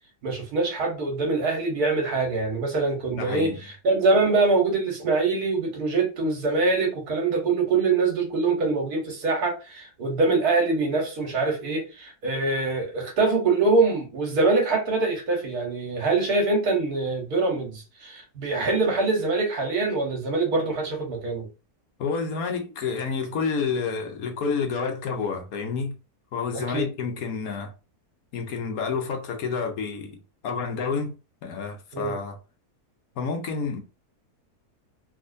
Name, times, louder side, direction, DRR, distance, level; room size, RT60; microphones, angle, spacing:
voice 1, 0.2-21.5 26.5-26.9 31.9-32.2, right 3 dB, 75° right, 1.7 m, -24 dB
voice 2, 3.1-3.6 22.0-26.0 26.3-27.7 28.3-30.2 30.4-31.2 31.4-32.4 33.2-33.8, left 5 dB, 70° left, 1.1 m, -29 dB
3.6 x 2.8 x 2.5 m
omnidirectional pair, 1.7 m